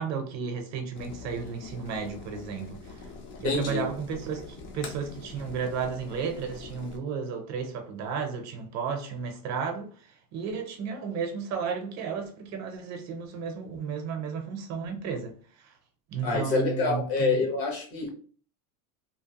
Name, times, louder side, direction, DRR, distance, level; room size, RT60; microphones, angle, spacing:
voice 1, 0.0-2.8 3.4-9.9 10.3-15.3 16.1-17.4, right 6 dB, 40° right, 0.6 m, -33 dB
sound 1, 0.9-7.0, left 3 dB, 30° left, 0.4 m, -44 dB
voice 2, 3.4-3.8 16.2-18.1, left 4 dB, 75° left, 1.2 m, -27 dB
2.8 x 2.1 x 2.8 m
cardioid pair, 150°, 40 cm